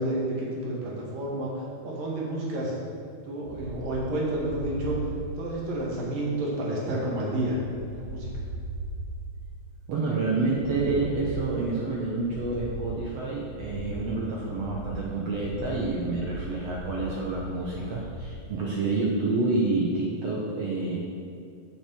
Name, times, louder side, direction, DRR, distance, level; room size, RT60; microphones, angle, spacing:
voice 1, 0.0-1.5 1.8-2.8 3.3-5.0 5.4-7.6 7.9-8.3, right 1 dB, 85° right, -4 dB, 3.8 m, -30 dB
sound 1, 3.4-18.4, right 1 dB, 10° right, 0.3 m, -38 dB
voice 2, 9.9-21.0, right 3 dB, 60° right, -3 dB, 1.9 m, -28 dB
8.4 x 7.1 x 7.0 m, 2.4 s
omnidirectional pair, 3.8 m